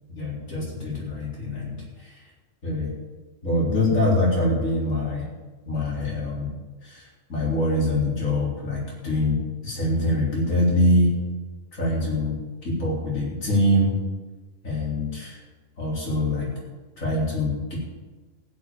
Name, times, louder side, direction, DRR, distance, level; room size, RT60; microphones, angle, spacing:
voice 1, 0.2-2.2 2.6-2.9 3.4-5.3 5.7-6.5 6.8-9.4 9.6-11.1 11.7-13.9 14.6-15.4 15.8-16.5 17.0-17.8, left 1 dB, 85° left, -5 dB, 4.4 m, -24 dB
15.0 x 5.9 x 9.1 m, 1.3 s
omnidirectional pair, 1.4 m